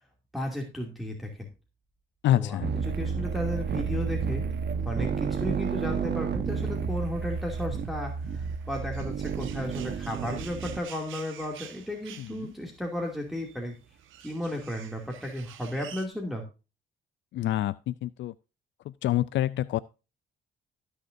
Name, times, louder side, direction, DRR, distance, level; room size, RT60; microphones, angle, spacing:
voice 1, 0.3-1.5 2.3-4.5 4.8-13.8 14.2-16.4, left 1 dB, ahead, 2.6 m, -34 dB
voice 2, 2.2-2.7 12.2-12.5 17.3-18.3 18.8-19.8, left 13 dB, 70° left, 0.4 m, -27 dB
sound 1, 2.6-10.8, right 6 dB, 55° right, 1.2 m, -31 dB
sound 2, 5.0-16.1, right 10 dB, 80° right, 1.3 m, -50 dB
17.0 x 6.6 x 2.6 m
cardioid pair, 90°, 20 cm